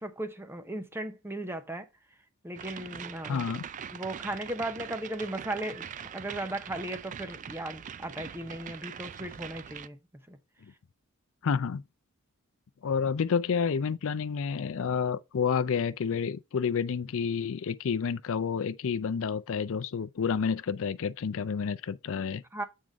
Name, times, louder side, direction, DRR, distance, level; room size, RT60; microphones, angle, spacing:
voice 1, 0.0-1.9 2.4-3.4 3.9-10.0 10.3-10.4 22.5-22.6, right 1 dB, 10° right, 0.7 m, -36 dB
sound 1, 2.5-9.9, right 8 dB, 35° right, 0.3 m, -42 dB
voice 2, 3.2-3.7 11.4-11.8 12.8-22.4, left 6 dB, 65° left, 0.4 m, -29 dB
7.8 x 3.6 x 5.1 m
head